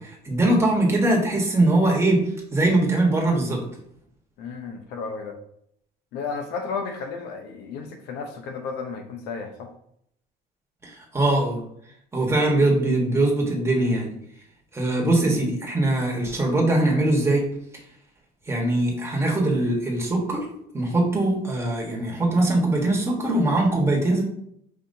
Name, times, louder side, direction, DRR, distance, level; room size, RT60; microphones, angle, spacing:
voice 1, 0.0-2.2 2.5-3.6 10.8-11.6 12.1-14.1 14.7-17.5 18.5-20.4 20.7-24.2, right 2 dB, 15° right, -1 dB, 1.3 m, -21 dB
voice 2, 4.4-5.4 6.1-9.7, left 5 dB, 90° left, 5 dB, 0.7 m, -33 dB
5.3 x 2.8 x 2.6 m, 0.71 s
cardioid pair, 110°, 17 cm